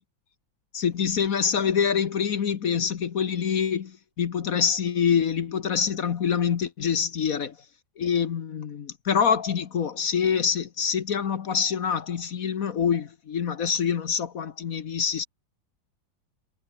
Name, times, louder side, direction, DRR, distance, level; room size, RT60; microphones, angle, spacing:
voice 1, 0.7-7.6 8.0-15.3, left 7 dB, 50° left, 1.3 m, -25 dB
omnidirectional pair, 2.1 m